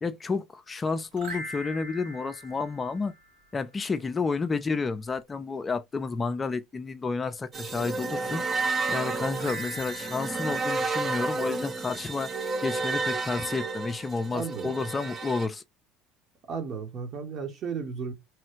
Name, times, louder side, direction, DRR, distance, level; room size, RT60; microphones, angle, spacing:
voice 1, 0.0-3.1 3.5-8.4 8.9-12.3 12.6-15.6, left 4 dB, 25° left, 0.4 m, -30 dB
sound 1, 1.1-3.6 9.3-12.0, right 1 dB, 75° right, 1.7 m, -42 dB
sound 2, 7.5-15.5, right 3 dB, 30° right, 0.6 m, -31 dB
voice 2, 14.3-14.7 16.5-18.1, right 5 dB, 50° right, 1.1 m, -34 dB
3.0 x 2.3 x 3.0 m
hypercardioid pair, 80°, 0 cm